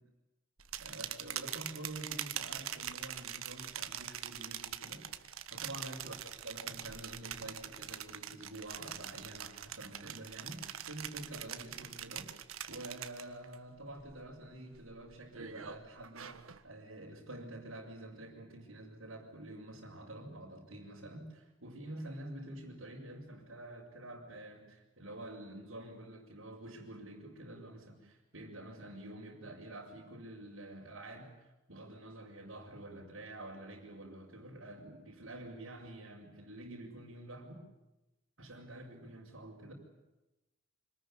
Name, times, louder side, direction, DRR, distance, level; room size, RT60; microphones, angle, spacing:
sound 1, 0.6-13.5 13.9-14.3 14.7-16.6, right 10 dB, 85° right, 1.6 m, -43 dB
voice 1, 0.8-6.1 6.4-12.3 12.7-16.4 16.6-37.6 38.4-39.7, right 1 dB, 70° right, -4 dB, 5.7 m, -48 dB
26.5 x 20.0 x 10.0 m, 1.0 s
head